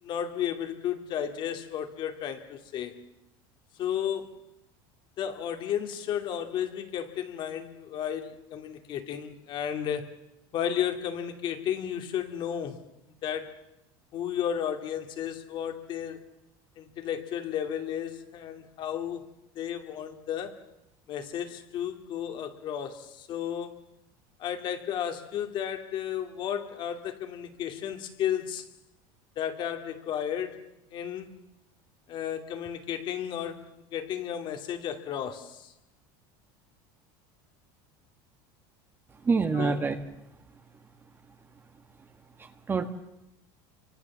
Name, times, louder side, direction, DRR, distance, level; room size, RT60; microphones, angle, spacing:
voice 1, 0.0-3.0 3.8-4.3 5.2-10.1 10.5-12.9 13.2-13.6 14.1-16.2 16.8-19.3 19.6-20.6 21.1-23.8 24.4-28.7 29.4-30.6 30.9-31.3 32.1-35.7 39.5-39.8, left 9 dB, 45° left, 2.5 m, -33 dB
voice 2, 39.2-40.0 42.4-42.9, right 4 dB, 20° right, 1.4 m, -26 dB
27.5 x 24.5 x 7.3 m
cardioid pair, 145°, 12 cm